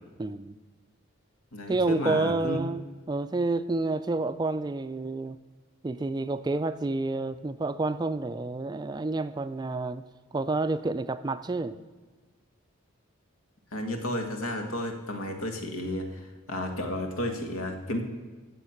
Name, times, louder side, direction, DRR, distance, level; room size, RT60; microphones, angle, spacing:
voice 1, 0.2-0.6 1.7-5.4 5.8-10.0 10.3-11.8, right 2 dB, 20° right, 12 dB, 0.3 m, -29 dB
voice 2, 1.5-2.6 13.7-18.0, left 1 dB, 90° left, 5 dB, 1.7 m, -32 dB
15.0 x 7.2 x 5.8 m, 1.3 s
head